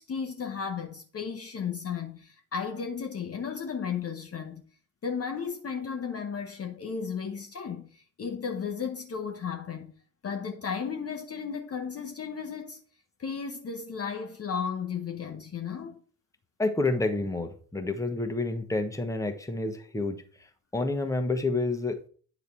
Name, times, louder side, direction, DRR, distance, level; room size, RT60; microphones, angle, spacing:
voice 1, 0.0-4.6 5.0-9.9 10.2-12.8 13.2-16.0, left 6 dB, 30° left, 1.0 m, -34 dB
voice 2, 16.6-20.2 20.7-22.1, left 2 dB, 5° left, 1.2 m, -29 dB
9.5 x 4.0 x 4.4 m
figure-of-eight pair, 45°, 48 cm